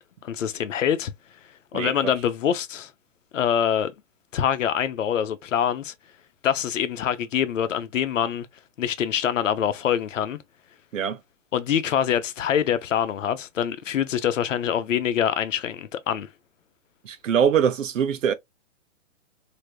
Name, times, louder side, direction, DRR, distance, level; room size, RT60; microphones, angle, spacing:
voice 1, 0.2-1.1 1.7-2.9 3.3-3.9 4.3-5.9 6.4-8.5 8.8-10.4 11.5-16.3, left 9 dB, 80° left, 0.8 m, -25 dB
voice 2, 17.0-18.3, right 8 dB, 85° right, 0.8 m, -22 dB
3.4 x 2.8 x 2.3 m
hypercardioid pair, 140°, 37 cm